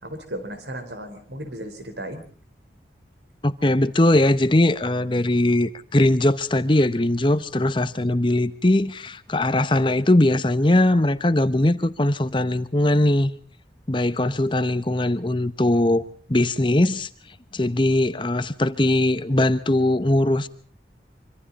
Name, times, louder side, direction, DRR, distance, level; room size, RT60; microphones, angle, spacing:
voice 1, 0.0-2.2, right 1 dB, 80° right, 4.4 m, -35 dB
voice 2, 3.4-13.3 13.9-16.0 16.3-17.1 17.5-20.5, left 1 dB, 30° left, 0.9 m, -20 dB
25.5 x 25.5 x 4.2 m
head